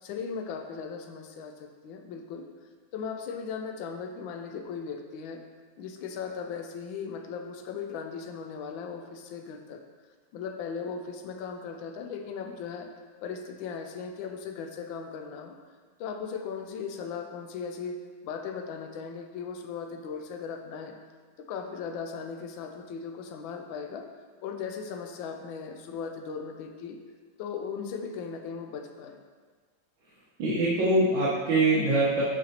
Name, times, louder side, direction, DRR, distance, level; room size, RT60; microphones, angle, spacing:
voice 1, 0.0-2.5 2.9-5.4 5.8-9.8 10.3-12.9 13.2-15.6 16.0-18.0 18.2-20.9 21.4-24.0 24.4-27.0 27.4-29.2, left 6 dB, 90° left, 5 dB, 1.4 m, -37 dB
voice 2, 30.4-32.2, right 2 dB, 75° right, -7 dB, 1.8 m, -23 dB
8.9 x 4.2 x 2.8 m, 1.5 s
omnidirectional pair, 2.1 m